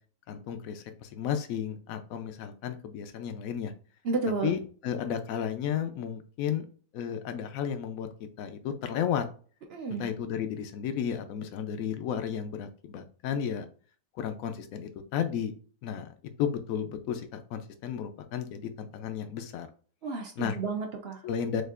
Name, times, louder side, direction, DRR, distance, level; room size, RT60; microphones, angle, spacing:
voice 1, 0.3-3.7 4.4-6.6 6.9-8.1 8.4-9.3 10.0-13.7 14.2-15.5 15.8-16.1 16.4-19.7 20.4-20.6 21.2-21.6, left 8 dB, 65° left, 8 dB, 1.0 m, -33 dB
voice 2, 4.0-4.5 9.7-10.1 20.0-21.2, right 4 dB, 55° right, 3 dB, 0.7 m, -31 dB
6.5 x 2.5 x 2.4 m, 0.42 s
omnidirectional pair, 1.7 m